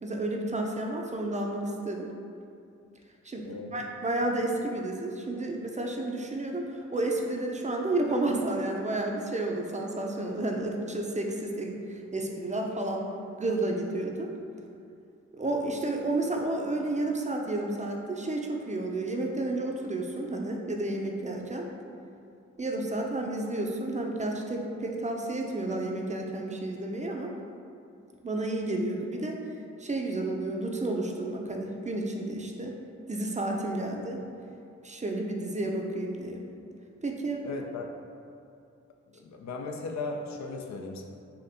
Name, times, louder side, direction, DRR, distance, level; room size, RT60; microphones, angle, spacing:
voice 1, 0.0-2.1 3.2-13.0 13.4-14.3 15.3-21.7 22.6-27.3 28.2-29.4 29.8-32.8 33.1-34.2 34.8-36.4 37.0-37.5, right 2 dB, 25° right, 0 dB, 0.5 m, -31 dB
voice 2, 3.4-3.8 37.4-37.9 39.1-41.0, left 3 dB, 65° left, 2 dB, 0.5 m, -37 dB
4.2 x 2.6 x 2.6 m, 2.5 s
supercardioid pair, 40°, 30 cm